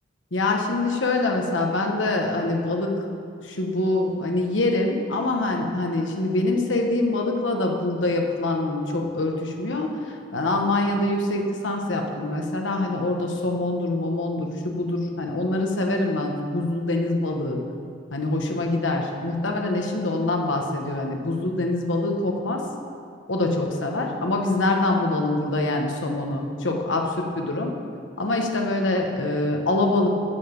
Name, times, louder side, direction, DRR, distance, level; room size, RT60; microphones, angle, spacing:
voice 1, 0.3-2.9 3.4-9.9 10.3-17.6 18.1-22.6 23.3-27.7 28.2-30.2, left 2 dB, 90° left, 2 dB, 1.3 m, -24 dB
12.5 x 7.1 x 5.4 m, 2.3 s
head